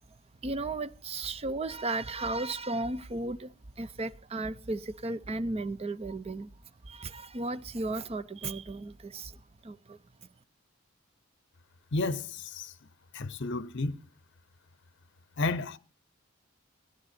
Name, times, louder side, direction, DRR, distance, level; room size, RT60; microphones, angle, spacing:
voice 1, 0.4-6.5 6.8-10.0, right 2 dB, 30° right, 0.6 m, -35 dB
voice 2, 11.9-12.7 13.1-14.0 15.4-15.8, left 3 dB, 60° left, 0.7 m, -31 dB
17.0 x 10.5 x 4.2 m
head